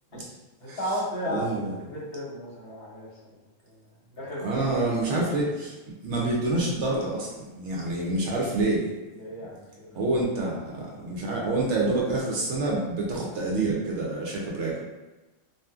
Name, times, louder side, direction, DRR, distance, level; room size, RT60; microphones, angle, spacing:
voice 1, 0.6-3.1 4.1-4.6 5.1-5.4 9.2-10.0, equal, 55° left, -6 dB, 0.9 m, -34 dB
voice 2, 1.3-1.8 4.4-5.7 6.0-8.9 9.9-14.8, right 2 dB, 70° right, -3 dB, 0.8 m, -27 dB
2.7 x 2.4 x 2.3 m, 1.1 s
omnidirectional pair, 1.4 m